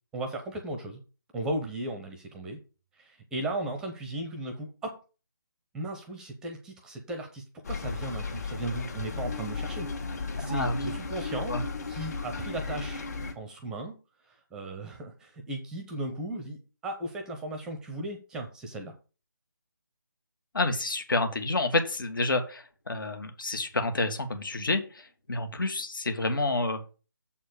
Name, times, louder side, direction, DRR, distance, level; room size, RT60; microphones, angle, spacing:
voice 1, 0.1-1.0 1.3-2.6 3.0-5.0 5.7-9.9 10.4-11.6 11.9-13.1 13.4-14.0 14.2-18.9, right 2 dB, 5° right, 5 dB, 0.7 m, -36 dB
sound 1, 7.6-13.3, left 4 dB, 50° left, 1.9 m, -35 dB
voice 2, 10.4-10.9 11.5-11.6 20.5-26.8, left 2 dB, 65° left, 7 dB, 1.8 m, -29 dB
7.3 x 4.3 x 6.7 m, 0.34 s
figure-of-eight pair, 155°, 12 cm